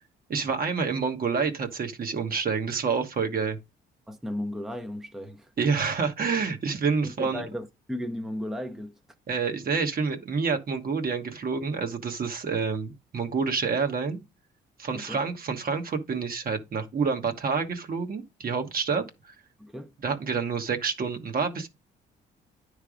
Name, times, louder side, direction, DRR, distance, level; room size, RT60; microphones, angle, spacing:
voice 1, 0.3-3.6 5.6-7.4 9.3-14.2 14.8-19.3 20.0-21.7, right 5 dB, 45° right, 1.2 m, -28 dB
voice 2, 4.1-5.5 7.0-8.9 14.9-15.2 19.6-19.9, left 1 dB, ahead, 0.7 m, -35 dB
9.7 x 3.4 x 4.9 m
cardioid pair, 90°, 20 cm